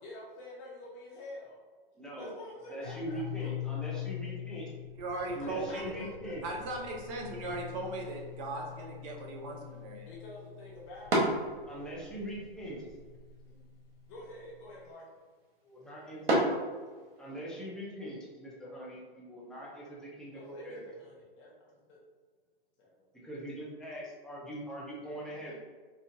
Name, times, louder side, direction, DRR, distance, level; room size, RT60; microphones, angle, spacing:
voice 1, 0.0-1.6 2.2-4.0 5.0-6.3 10.1-11.1 13.4-13.6 14.1-15.0 20.3-21.5 21.9-22.0 22.8-23.1, left 1 dB, 35° left, -4 dB, 0.8 m, -48 dB
voice 2, 2.0-2.3 2.7-4.7 5.3-6.4 11.7-12.8 15.6-16.4 17.2-20.8 23.1-25.6, right 1 dB, ahead, -6 dB, 0.6 m, -42 dB
sound 1, 2.8-14.8, left 12 dB, 85° left, 0.5 m, -44 dB
voice 3, 5.0-5.8 6.4-10.1, right 2 dB, 35° right, 0 dB, 0.7 m, -38 dB
sound 2, 7.3-17.4, right 1 dB, 75° right, 1.2 m, -37 dB
4.3 x 2.4 x 2.6 m, 1.4 s
hypercardioid pair, 130°, 29 cm